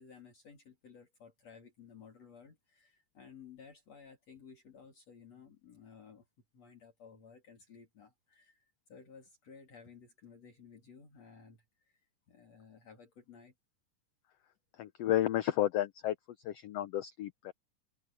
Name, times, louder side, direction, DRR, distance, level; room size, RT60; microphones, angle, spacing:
voice 1, 0.0-6.3 6.5-13.5, left 6 dB, 55° left, 4.2 m, -56 dB
voice 2, 14.8-16.1 16.4-17.5, left 13 dB, 90° left, 1.4 m, -32 dB
open air
omnidirectional pair, 3.7 m